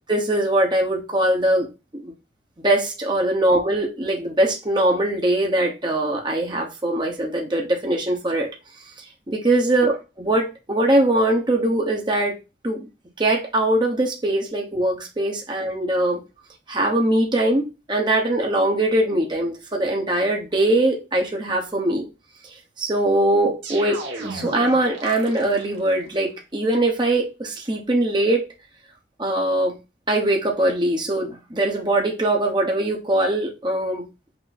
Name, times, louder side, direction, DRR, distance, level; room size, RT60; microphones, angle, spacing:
voice 1, 0.1-1.7 1.9-2.1 2.6-8.5 9.3-12.4 12.6-12.9 13.2-16.2 16.7-22.0 22.4-28.4 29.2-29.8 30.1-34.1, right 1 dB, 25° right, 1.0 m, -21 dB
sound 1, 23.6-25.9, right 3 dB, 80° right, 1.3 m, -35 dB
5.8 x 2.2 x 4.1 m
head